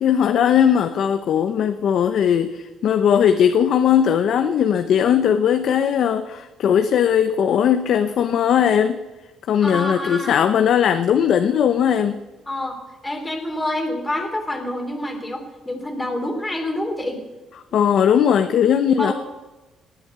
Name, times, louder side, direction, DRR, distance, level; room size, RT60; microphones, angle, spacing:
voice 1, 0.0-9.0 9.5-12.2 17.7-19.1, left 8 dB, 60° left, 9 dB, 0.7 m, -18 dB
voice 2, 9.6-10.4 12.5-12.8 13.0-17.2 18.5-18.6 19.0-19.1, left 1 dB, 10° left, 3 dB, 2.9 m, -27 dB
19.0 x 7.7 x 8.1 m, 1.1 s
cardioid pair, 135°, 0 cm